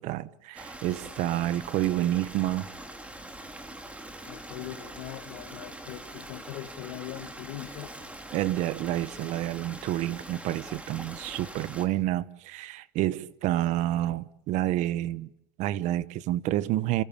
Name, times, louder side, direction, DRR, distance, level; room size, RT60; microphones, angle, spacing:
voice 1, 0.0-2.7 8.3-15.3 15.6-17.0, right 14 dB, 55° right, 1.0 m, -29 dB
Stream, 0.5-11.9, right 1 dB, 10° right, 2.6 m, -43 dB
voice 2, 4.3-8.1, left 15 dB, 70° left, 1.8 m, -41 dB
30.0 x 16.0 x 8.8 m
cardioid pair, 140°, 15 cm